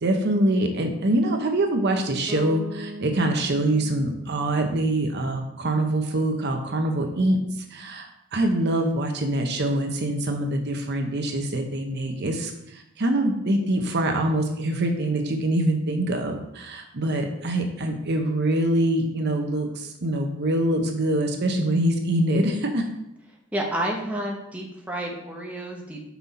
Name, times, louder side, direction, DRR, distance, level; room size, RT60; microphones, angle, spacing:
voice 1, 0.0-7.4 7.7-22.9, right 1 dB, 50° right, 4 dB, 0.8 m, -24 dB
Bass guitar, 2.3-6.1, right 1 dB, 10° left, 1.3 m, -40 dB
voice 2, 23.5-26.0, right 1 dB, 5° right, -1 dB, 1.0 m, -30 dB
6.0 x 5.5 x 4.2 m, 0.84 s
head